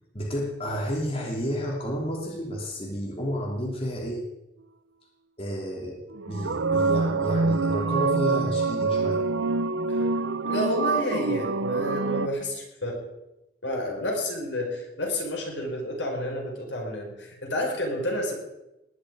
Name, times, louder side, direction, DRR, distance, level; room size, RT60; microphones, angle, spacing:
voice 1, 0.1-4.2 5.4-9.2, equal, 30° left, -2 dB, 3.0 m, -31 dB
sound 1, 6.1-12.3, right 3 dB, 90° right, 0.8 m, -26 dB
voice 2, 9.9-13.0 13.6-18.3, left 1 dB, 80° left, 0 dB, 5.3 m, -30 dB
19.5 x 6.6 x 9.5 m, 0.95 s
head